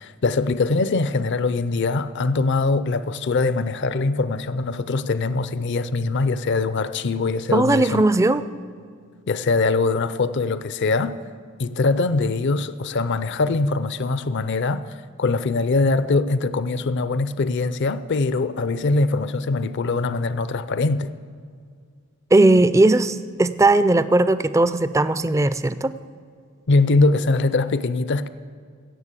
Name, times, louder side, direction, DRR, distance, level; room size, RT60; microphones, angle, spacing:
voice 1, 0.0-8.0 9.3-11.2 11.6-14.8 15.2-21.1 26.7-28.3, left 3 dB, 55° left, 0.5 m, -22 dB
voice 2, 7.5-8.4 22.3-26.0, right 2 dB, 15° right, 0.4 m, -18 dB
17.0 x 7.2 x 8.3 m
head